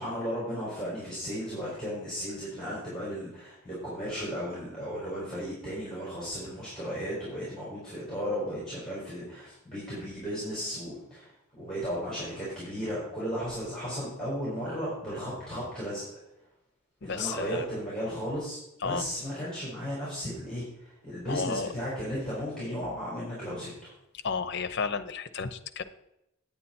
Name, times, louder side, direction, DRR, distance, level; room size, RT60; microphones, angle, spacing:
voice 1, 0.0-11.3 11.6-16.0 17.0-18.6 18.8-23.9, equal, 5° left, -8 dB, 4.4 m, -35 dB
voice 2, 17.0-17.6 18.8-19.0 21.3-21.7 24.2-25.8, left 5 dB, 55° left, 11 dB, 0.7 m, -32 dB
9.2 x 9.1 x 4.3 m, 0.84 s
head